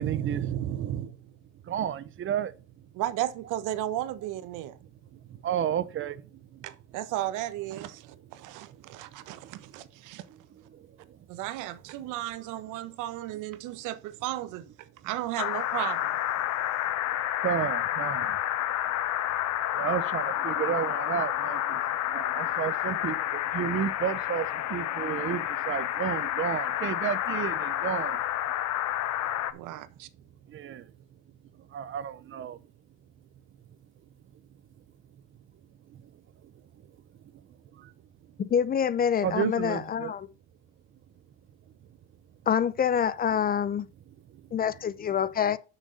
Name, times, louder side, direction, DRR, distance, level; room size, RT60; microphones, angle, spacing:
voice 1, 0.0-1.3 1.6-2.9 4.8-6.7 8.2-9.0 9.3-9.8 10.3-11.3 12.0-12.1 12.4-12.5 17.4-18.4 19.7-28.2 30.5-30.9 31.5-32.6 35.9-36.5 37.7-37.9 39.2-40.1 44.3-44.5, right 9 dB, 35° right, 0.8 m, -33 dB
voice 2, 2.9-4.7 6.6-10.2 11.3-14.6 15.0-16.2 29.5-30.1, right 14 dB, 60° right, 1.2 m, -34 dB
sound 1, 15.4-29.5, left 12 dB, 50° left, 0.9 m, -30 dB
voice 3, 38.4-40.3 42.5-43.9 44.5-45.6, left 8 dB, 25° left, 0.6 m, -26 dB
6.5 x 6.1 x 6.6 m
supercardioid pair, 110°, 34 cm